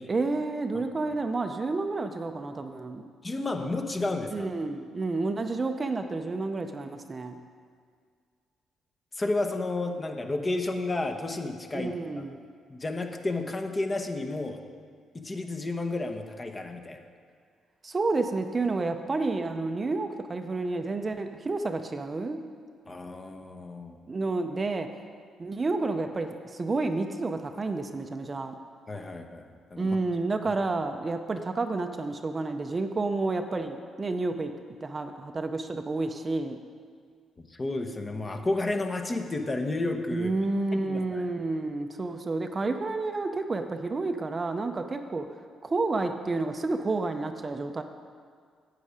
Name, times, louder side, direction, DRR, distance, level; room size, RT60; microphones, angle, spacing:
voice 1, 0.1-3.0 4.3-7.4 11.7-12.4 17.8-22.4 24.1-24.9 25.4-28.5 29.8-34.5 34.8-36.6 40.1-45.3 45.6-47.8, right 3 dB, 30° right, 6 dB, 0.6 m, -30 dB
voice 2, 3.2-4.5 9.2-11.9 12.7-14.6 15.1-17.0 22.9-24.0 28.9-29.4 29.7-30.0 37.4-40.3 40.7-41.2, left 2 dB, 25° left, 5 dB, 0.9 m, -31 dB
9.7 x 8.3 x 5.1 m, 2.1 s
cardioid pair, 90°, 0 cm